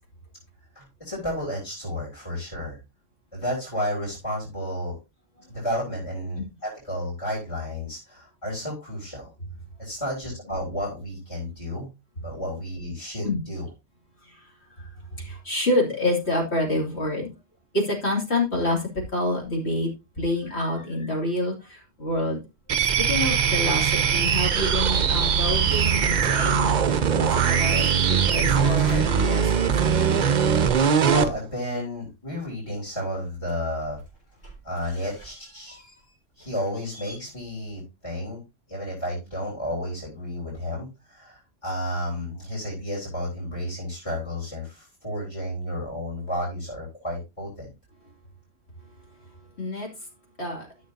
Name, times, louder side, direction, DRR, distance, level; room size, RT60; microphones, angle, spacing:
voice 1, 0.8-2.8 3.3-5.0 5.5-9.3 9.8-11.9 12.2-13.7 31.1-34.0 34.6-35.8 36.4-38.4 38.7-47.7, left 1 dB, 25° left, -5 dB, 3.5 m, -32 dB
voice 2, 14.8-17.3 17.7-19.9 20.2-22.4 23.0-30.2 49.6-49.9 50.4-50.7, left 1 dB, 60° left, 0 dB, 3.0 m, -28 dB
sound 1, 22.7-31.3, right 7 dB, 50° right, 0.6 m, -21 dB
sound 2, 23.7-25.3 25.6-27.0 27.3-30.1 32.4-32.5 33.1-37.2, right 2 dB, 85° left, 4.8 m, -47 dB
13.0 x 6.3 x 2.7 m, 0.25 s
omnidirectional pair, 1.3 m